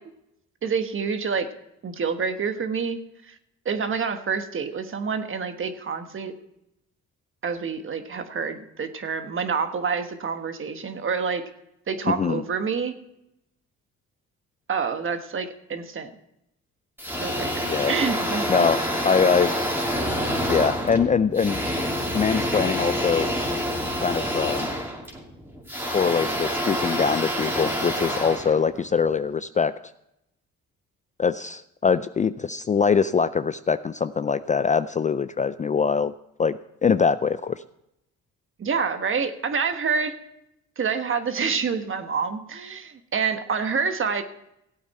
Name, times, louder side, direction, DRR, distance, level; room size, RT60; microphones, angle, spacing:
voice 1, 0.6-1.5 1.8-3.0 3.3-3.4 3.6-6.3 7.4-11.4 11.9-12.9 14.7-16.1 17.1-18.7 38.6-40.1 40.8-44.2, right 5 dB, 45° right, 8 dB, 1.3 m, -27 dB
voice 2, 12.1-12.4 17.6-17.9 18.5-19.6 20.5-21.6 22.1-23.3 24.0-24.7 25.9-29.7 31.2-36.1 36.4-37.6, left 6 dB, 25° left, 13 dB, 0.3 m, -23 dB
sound 1, 17.0-29.2, equal, 5° right, 2.6 m, -27 dB
16.0 x 8.6 x 4.2 m, 0.83 s
cardioid pair, 90°, 30 cm